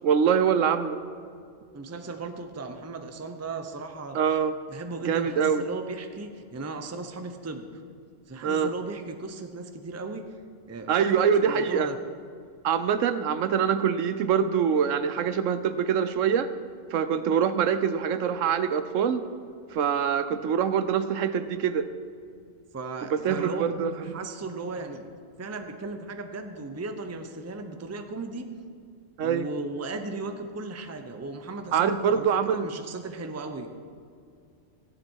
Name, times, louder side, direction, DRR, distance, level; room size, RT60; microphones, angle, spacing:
voice 1, 0.0-1.0 4.1-4.5 5.1-5.6 8.4-8.7 10.9-11.9 12.6-16.5 16.9-19.2 19.7-21.9 23.0-24.2 29.2-29.5 31.7-32.7, right 7 dB, 75° right, 12 dB, 1.0 m, -24 dB
voice 2, 1.7-4.4 4.7-7.7 8.3-10.3 10.7-12.0 22.7-23.7 24.0-25.1 25.4-28.5 29.2-33.7, right 3 dB, 15° right, 6 dB, 0.6 m, -36 dB
14.5 x 10.5 x 4.6 m, 2.3 s
omnidirectional pair, 1.4 m